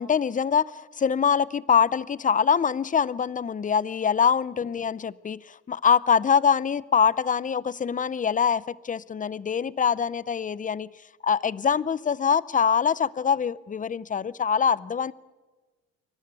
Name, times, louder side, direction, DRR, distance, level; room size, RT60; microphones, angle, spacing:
voice 1, 0.0-10.9 11.2-15.1, left 7 dB, 25° left, 0.6 m, -24 dB
25.0 x 12.0 x 9.1 m
cardioid pair, 90°, 30 cm